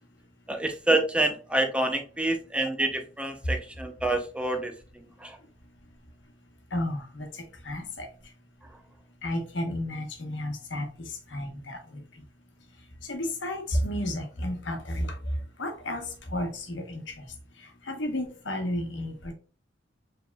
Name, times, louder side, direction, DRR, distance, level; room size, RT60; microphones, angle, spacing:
voice 1, 0.5-4.7 5.2-5.3, right 1 dB, 5° right, 0.5 m, -27 dB
voice 2, 6.7-7.3 7.6-8.1 9.2-10.9 11.3-11.8 13.1-15.1 15.6-16.0 16.3-17.0 17.9-19.1, left 1 dB, 75° left, 1.1 m, -31 dB
4.8 x 3.4 x 2.2 m
head